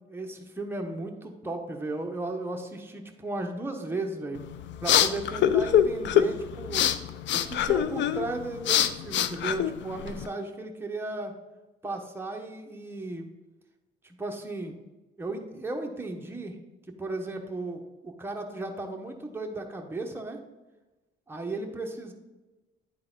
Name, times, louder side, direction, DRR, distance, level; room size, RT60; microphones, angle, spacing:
voice 1, 0.0-4.4 4.8-6.9 7.3-11.3 11.8-13.3 14.0-14.8 15.2-16.6 17.0-20.4 21.3-22.1, right 2 dB, 10° right, 2 dB, 1.0 m, -35 dB
sound 1, 4.4-10.3, left 10 dB, 65° left, 0.4 m, -25 dB
9.8 x 3.9 x 3.9 m, 1.1 s
cardioid pair, 90°, 20 cm